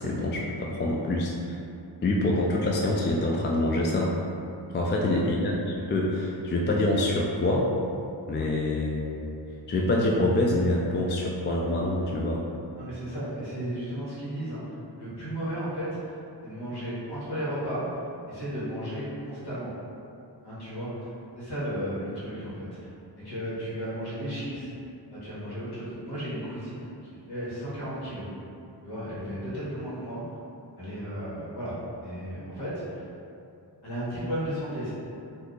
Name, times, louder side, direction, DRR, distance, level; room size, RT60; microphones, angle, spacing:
voice 1, 0.0-1.6 2.0-4.1 4.7-7.7 8.3-9.2 9.7-12.4, left 1 dB, 30° left, -2 dB, 0.3 m, -26 dB
voice 2, 4.9-5.3 12.7-14.6 15.0-16.1 16.4-17.8 18.3-19.7 20.4-22.7 23.1-24.7 25.1-26.9 27.3-28.3 28.8-30.2 30.8-33.0 33.8-34.9, equal, 60° left, -10 dB, 1.4 m, -34 dB
2.7 x 2.4 x 3.7 m, 2.7 s
wide cardioid pair, 65°, 43 cm